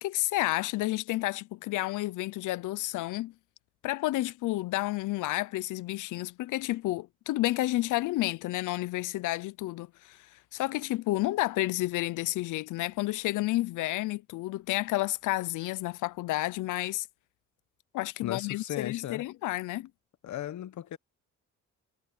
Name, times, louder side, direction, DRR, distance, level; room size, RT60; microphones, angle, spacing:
voice 1, 0.0-3.3 3.8-10.2 10.5-17.1 17.9-19.9, left 17 dB, 85° left, 0.7 m, -30 dB
voice 2, 18.2-19.2 20.2-21.0, left 12 dB, 70° left, 1.3 m, -36 dB
cardioid pair, 90°, 30 cm